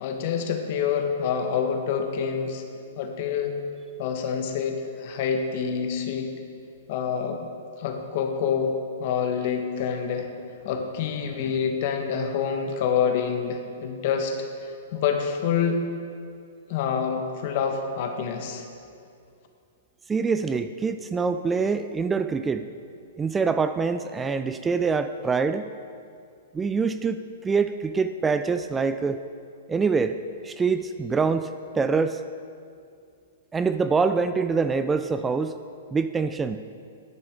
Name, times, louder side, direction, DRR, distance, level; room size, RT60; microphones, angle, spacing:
voice 1, 0.0-2.6 3.0-3.5 4.0-6.3 6.9-7.5 7.8-10.3 10.6-14.4 14.6-15.8 16.7-18.7, left 7 dB, 50° left, 5 dB, 1.1 m, -27 dB
voice 2, 20.1-22.7 23.2-25.7 26.5-29.2 29.7-30.2 30.4-31.5 31.7-32.2 33.5-35.6 35.9-36.6, right 5 dB, 15° right, 10 dB, 0.3 m, -25 dB
10.5 x 9.4 x 3.6 m, 2.4 s
hypercardioid pair, 120°, 0 cm